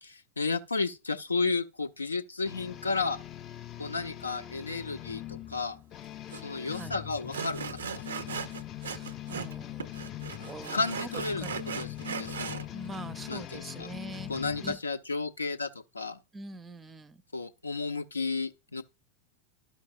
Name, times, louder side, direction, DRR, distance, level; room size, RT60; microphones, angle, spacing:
voice 1, 0.0-3.2 3.8-5.8 6.4-8.4 10.7-11.4 11.8-12.7 13.3-13.9 14.3-15.7 15.9-16.2 17.3-18.8, left 4 dB, 80° left, 0.5 m, -33 dB
sound 1, 2.4-14.8, left 13 dB, 30° left, 0.5 m, -42 dB
Sawing, 6.3-6.4 6.7-6.9 7.3-9.6 9.8-12.6, right 6 dB, 70° right, 0.5 m, -38 dB
voice 2, 6.7-7.0 8.8-11.1 11.4-11.5 12.6-14.3 14.6-14.8 16.3-17.2, right 2 dB, 15° right, 0.5 m, -44 dB
13.0 x 5.2 x 2.5 m
figure-of-eight pair, 90°, 0 cm